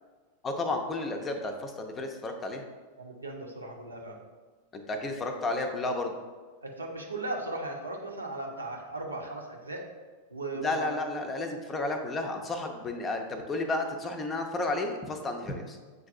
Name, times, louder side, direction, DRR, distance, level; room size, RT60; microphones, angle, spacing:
voice 1, 0.4-2.6 4.7-6.1 10.5-15.8, left 2 dB, 20° left, 4 dB, 0.5 m, -32 dB
voice 2, 3.0-4.2 6.6-9.9 10.3-10.9, right 2 dB, 80° right, 0 dB, 0.6 m, -37 dB
7.5 x 2.6 x 2.4 m, 1.4 s
figure-of-eight pair, 90°, 0 cm